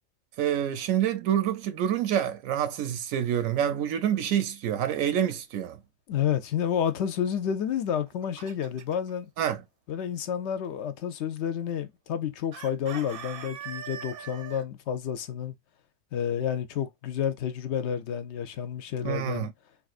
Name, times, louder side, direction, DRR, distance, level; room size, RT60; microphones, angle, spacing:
voice 1, 0.4-5.8 9.4-9.6 19.0-19.5, right 10 dB, 85° right, 1.0 m, -27 dB
voice 2, 6.1-9.3 9.9-15.5 16.1-19.5, left 8 dB, 65° left, 0.8 m, -30 dB
Chicken rooster, 7.9-9.1 12.5-14.6, right 8 dB, 55° right, 0.7 m, -41 dB
3.7 x 2.5 x 2.4 m
omnidirectional pair, 1.4 m